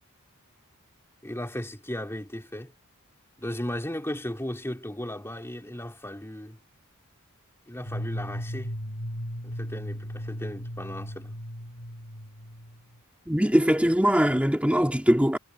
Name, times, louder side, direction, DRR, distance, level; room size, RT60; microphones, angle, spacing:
voice 1, 1.2-2.7 3.4-6.6 7.7-8.7 9.4-11.4, left 1 dB, 10° left, 3.3 m, -36 dB
sound 1, 7.8-13.0, equal, 80° left, 6.0 m, -36 dB
voice 2, 13.3-15.4, equal, 5° right, 2.7 m, -21 dB
head